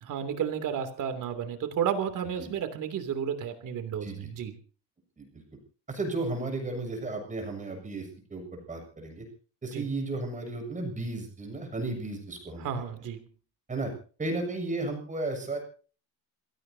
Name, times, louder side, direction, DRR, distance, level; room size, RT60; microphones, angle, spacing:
voice 1, 0.0-4.5 9.7-9.9 12.6-13.2, right 8 dB, 50° right, 8 dB, 3.0 m, -32 dB
voice 2, 5.9-9.2 9.6-12.7 13.7-13.9 14.2-15.6, right 2 dB, 20° right, 3 dB, 7.4 m, -34 dB
27.5 x 17.5 x 2.8 m, 0.40 s
cardioid pair, 150°, 41 cm